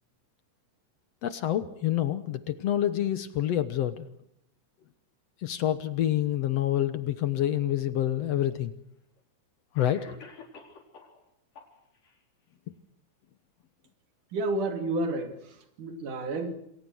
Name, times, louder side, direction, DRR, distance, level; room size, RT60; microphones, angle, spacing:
voice 1, 1.2-4.1 5.4-8.7 9.7-10.1, left 12 dB, 60° left, 1.9 m, -27 dB
Cough, 8.1-8.2 9.2-9.3 9.8-11.2 11.5-12.2, left 4 dB, 75° left, 5.8 m, -49 dB
voice 2, 14.3-16.5, right 2 dB, 75° right, 4.2 m, -31 dB
28.5 x 21.5 x 6.3 m
omnidirectional pair, 3.7 m